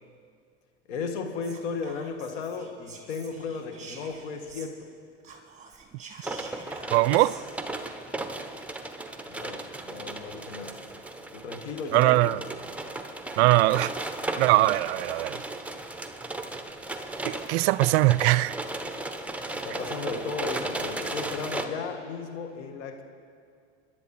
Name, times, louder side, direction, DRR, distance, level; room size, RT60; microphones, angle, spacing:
voice 1, 0.9-4.9 9.3-10.8 11.3-12.4 19.5-23.0, left 5 dB, 75° left, 1.9 m, -35 dB
Whispering, 1.4-4.9 5.2-7.4, right 5 dB, 20° right, 2.6 m, -48 dB
sound 1, 6.2-21.7, right 2 dB, 5° right, 1.1 m, -35 dB
voice 2, 6.9-7.4 11.9-12.4 13.4-13.9 14.4-15.4 17.2-18.6, right 18 dB, 65° right, 0.5 m, -21 dB
25.5 x 11.0 x 4.4 m
hypercardioid pair, 90°, 34 cm